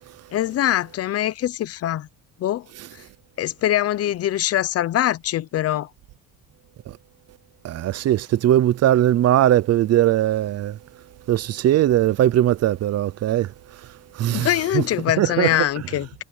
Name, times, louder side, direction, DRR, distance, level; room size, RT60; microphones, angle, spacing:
voice 1, 0.3-2.1 2.4-2.7 2.9-3.0 3.4-5.9 14.3-16.2, left 12 dB, 40° left, 0.6 m, -23 dB
voice 2, 7.6-10.8 11.3-13.5 14.1-14.5 14.7-14.8 15.2-15.6, right 12 dB, 40° right, 0.7 m, -19 dB
cardioid pair, 170°, 37 cm